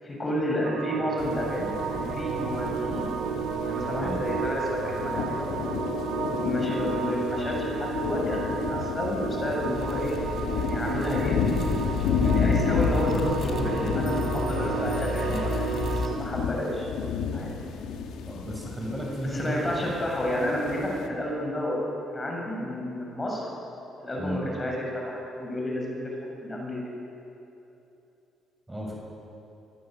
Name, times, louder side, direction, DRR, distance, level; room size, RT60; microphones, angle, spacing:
voice 1, 0.0-3.1 3.6-5.6 6.3-10.1 10.5-11.4 12.2-16.9 17.3-17.5 19.3-21.8 22.1-23.4 24.0-26.0 26.4-26.8, left 1 dB, 25° left, -1 dB, 7.2 m, -31 dB
sound 1, 0.6-16.2, right 5 dB, 85° right, 2.3 m, -32 dB
sound 2, 1.2-21.1, left 6 dB, 85° left, 2.0 m, -32 dB
sound 3, 9.7-16.1, left 5 dB, 55° left, 3.3 m, -32 dB
voice 2, 18.2-19.7 24.2-24.4 28.7-29.0, equal, 10° right, -2 dB, 6.8 m, -33 dB
23.5 x 20.5 x 8.0 m, 2.9 s
cardioid pair, 90°, 0 cm